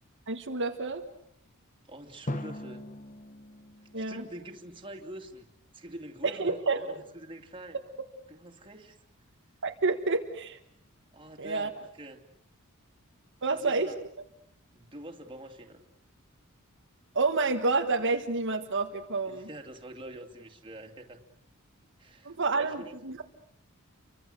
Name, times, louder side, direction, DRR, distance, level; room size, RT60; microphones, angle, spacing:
voice 1, 0.3-1.0 3.9-4.2 6.2-6.8 9.6-10.6 11.4-11.7 13.4-13.9 17.1-19.5 22.2-23.2, right 3 dB, 60° right, 3 dB, 1.5 m, -29 dB
voice 2, 1.9-2.9 3.8-7.8 8.3-9.0 11.1-12.2 13.5-14.0 14.7-15.8 19.2-21.2 22.0-22.9, right 1 dB, 25° right, 3 dB, 2.8 m, -45 dB
Drum, 2.3-5.2, left 1 dB, 35° left, 1.2 m, -41 dB
30.0 x 25.0 x 6.8 m, 0.72 s
head